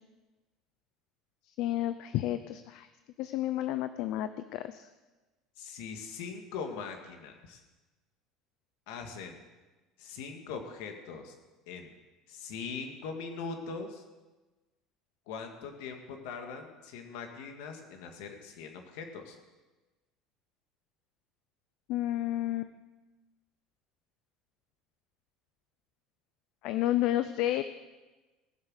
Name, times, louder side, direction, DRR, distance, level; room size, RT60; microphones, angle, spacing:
voice 1, 1.6-2.9 3.2-4.9 21.9-22.7 26.6-27.6, left 13 dB, 60° left, 11 dB, 0.6 m, -31 dB
voice 2, 5.6-7.6 8.9-9.4 10.0-11.3 11.7-11.9 12.3-14.0 15.3-19.4, left 5 dB, 75° left, 4 dB, 2.2 m, -41 dB
19.5 x 7.7 x 6.6 m, 1.2 s
cardioid pair, 155°, 0 cm